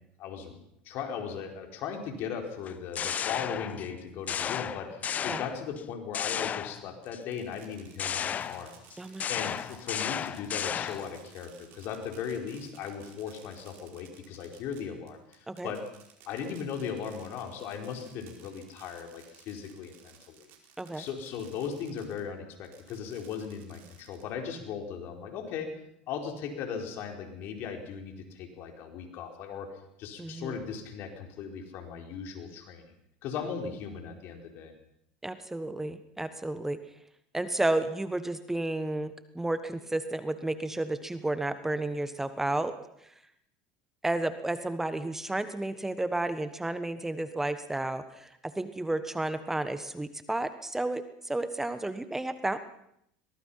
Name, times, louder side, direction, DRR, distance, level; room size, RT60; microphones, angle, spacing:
voice 1, 0.2-8.7 9.0-15.8 16.3-20.5 21.0-25.7 26.1-29.7 30.0-32.9 33.2-34.7, left 7 dB, 60° left, 4 dB, 4.6 m, -38 dB
sound 1, 2.7-3.9 4.3-5.8 6.1-7.2 8.0-11.2, left 8 dB, 35° left, 0.8 m, -34 dB
Fireworks, 7.0-22.2 22.6-24.5, right 9 dB, 60° right, 5.1 m, -57 dB
voice 2, 30.2-30.5 35.2-36.8 37.3-42.7 44.0-52.6, right 2 dB, 10° right, 11 dB, 1.3 m, -32 dB
22.5 x 20.5 x 5.8 m, 0.73 s
hypercardioid pair, 90°, 4 cm